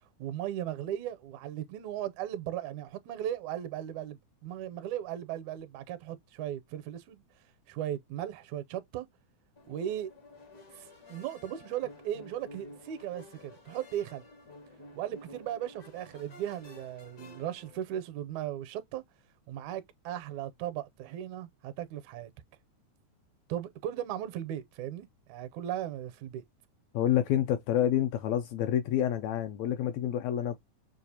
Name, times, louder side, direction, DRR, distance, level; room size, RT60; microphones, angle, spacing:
voice 1, 0.2-7.2 7.7-9.1 9.7-10.1 10.8-14.3 14.9-19.0 19.5-22.3 23.5-26.4, right 11 dB, 80° right, 1.9 m, -37 dB
sound 1, 9.6-17.8, left 1 dB, 65° left, 0.9 m, -52 dB
voice 2, 26.9-30.6, left 11 dB, 80° left, 1.6 m, -28 dB
6.5 x 2.4 x 2.7 m
omnidirectional pair, 3.5 m